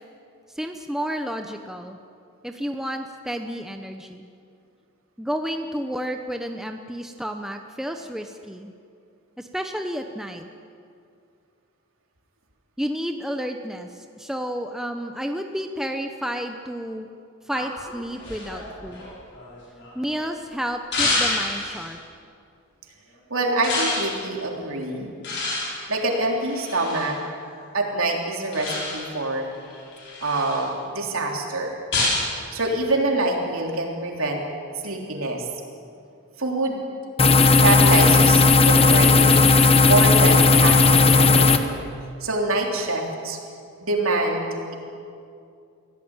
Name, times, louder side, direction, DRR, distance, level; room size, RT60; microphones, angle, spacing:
voice 1, 0.5-2.0 2.4-4.3 5.2-8.7 9.4-10.5 12.8-17.1 17.5-19.1 19.9-22.0, equal, ahead, 5 dB, 0.8 m, -31 dB
sound 1, 17.5-20.2 20.9-21.9 23.6-24.2 25.2-27.1 28.5-29.2 29.7-30.7 31.9-32.3, left 2 dB, 50° left, 6.6 m, -28 dB
voice 2, 23.3-25.1 25.9-27.1 27.7-29.5 30.2-31.8 32.5-34.4 34.8-35.5 36.4-36.8 37.6-39.4 39.8-41.6 42.2-43.4 43.8-44.7, right 2 dB, 65° right, 1 dB, 3.4 m, -25 dB
sound 2, 37.2-41.6, left 3 dB, 25° left, 1.0 m, -15 dB
24.5 x 16.5 x 8.9 m, 2.4 s
head